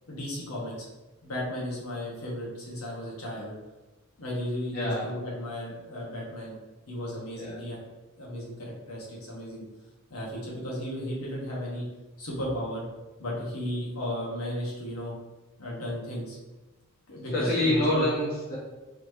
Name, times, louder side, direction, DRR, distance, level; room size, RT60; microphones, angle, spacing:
voice 1, 0.1-0.8 1.2-3.5 4.2-6.6 6.9-7.8 8.2-9.6 10.1-11.8 12.2-12.8 13.2-15.1 15.6-16.4 17.1-18.0, equal, 80° left, -3 dB, 1.2 m, -34 dB
voice 2, 4.7-5.2 7.4-7.6 17.3-18.6, left 1 dB, 45° left, -7 dB, 0.7 m, -27 dB
4.1 x 3.0 x 2.7 m, 1.1 s
head